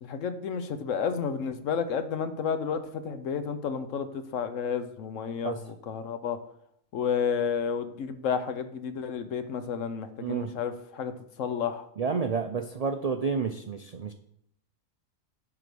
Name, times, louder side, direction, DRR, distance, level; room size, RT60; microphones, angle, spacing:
voice 1, 0.0-6.4 6.9-11.1 11.4-11.8, left 6 dB, 80° left, 10 dB, 1.2 m, -31 dB
voice 2, 10.2-10.5 12.0-14.1, right 5 dB, 60° right, 7 dB, 0.4 m, -30 dB
10.5 x 3.8 x 6.7 m, 0.72 s
omnidirectional pair, 1.3 m